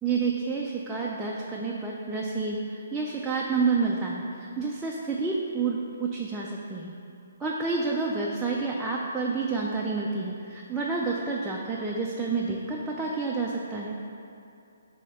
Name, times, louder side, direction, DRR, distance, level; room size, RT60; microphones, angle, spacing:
voice 1, 0.0-2.6 2.9-6.9 7.4-14.0, right 4 dB, 5° right, -4 dB, 0.4 m, -29 dB
7.9 x 2.8 x 5.3 m, 2.7 s
hypercardioid pair, 165°, 0 cm